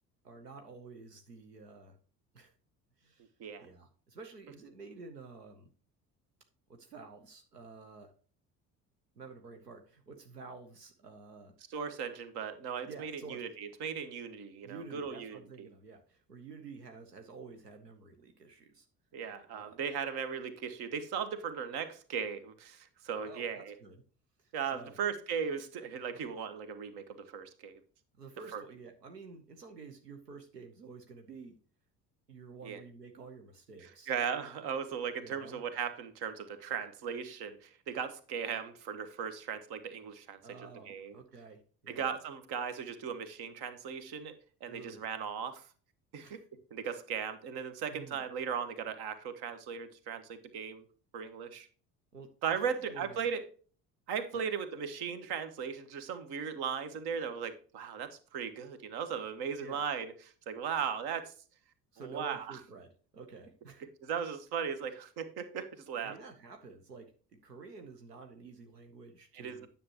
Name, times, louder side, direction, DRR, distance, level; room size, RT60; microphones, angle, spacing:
voice 1, 0.2-2.0 2.3-2.5 3.0-3.3 3.6-5.7 6.7-8.1 9.1-11.5 12.9-13.4 14.6-18.9 19.5-19.8 23.2-24.0 24.4-25.0 26.1-26.2 28.2-31.6 32.3-34.1 35.2-35.6 40.4-42.1 44.7-45.0 46.2-46.4 47.9-48.2 52.1-52.3 52.6-53.2 54.3-54.4 59.6-59.8 61.9-62.9 63.1-63.8 66.0-67.1 67.4-69.7, right 4 dB, 85° right, 0.9 m, -50 dB
voice 2, 11.7-15.7 19.1-23.7 24.5-27.8 28.5-28.6 32.6-32.8 33.8-40.4 40.9-41.1 41.9-44.3 44.6-45.7 46.1-46.4 46.7-50.8 51.1-51.7 52.4-53.4 54.1-60.1 60.5-61.3 62.0-62.6 64.0-66.2 69.3-69.7, right 7 dB, 55° right, 1.3 m, -37 dB
9.9 x 6.9 x 2.9 m
figure-of-eight pair, 60°, 47 cm